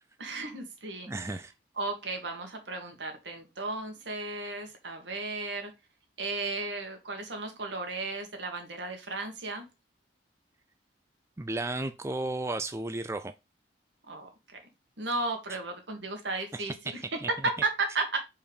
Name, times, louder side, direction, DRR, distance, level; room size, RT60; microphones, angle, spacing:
voice 1, 0.2-1.1 1.8-5.7 6.2-9.7 14.0-14.3 15.0-17.0 17.3-18.2, right 3 dB, 75° right, 2.0 m, -34 dB
voice 2, 1.1-1.5 11.4-13.3 16.5-16.7 17.2-17.3, right 2 dB, 15° right, 0.4 m, -33 dB
5.4 x 4.6 x 5.0 m
head